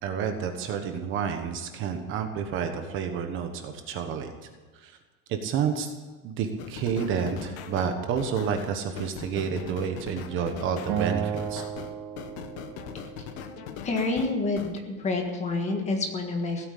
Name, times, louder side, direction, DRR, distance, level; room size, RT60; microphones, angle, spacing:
voice 1, 0.0-4.3 4.7-5.0 5.3-5.9 6.2-11.6, right 7 dB, 30° right, 6 dB, 1.2 m, -30 dB
sound 1, 6.6-14.8, left 8 dB, 60° left, 1.4 m, -40 dB
Acoustic guitar, 10.9-14.1, right 8 dB, 55° right, 1.7 m, -34 dB
voice 2, 13.8-16.7, left 3 dB, 15° left, 4 dB, 1.6 m, -28 dB
16.5 x 9.2 x 8.4 m, 1.4 s
cardioid pair, 180°, 39 cm